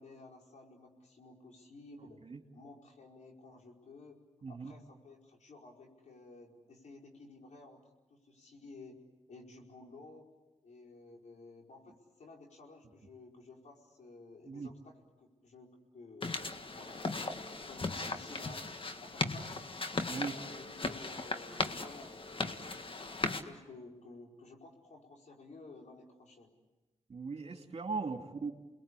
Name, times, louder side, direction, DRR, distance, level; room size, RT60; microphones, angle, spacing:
voice 1, 0.0-2.2 2.5-4.2 4.5-7.8 8.1-9.0 9.3-10.3 10.6-19.6 20.1-26.5, left 3 dB, 70° left, 0 dB, 4.9 m, -54 dB
voice 2, 4.4-4.7 14.5-14.7 20.1-20.3 27.1-28.5, right 4 dB, 55° right, 4 dB, 2.8 m, -38 dB
sound 1, 16.2-23.4, left 3 dB, 45° left, 1.8 m, -37 dB
29.0 x 21.5 x 8.5 m, 1.1 s
cardioid pair, 50°, 13 cm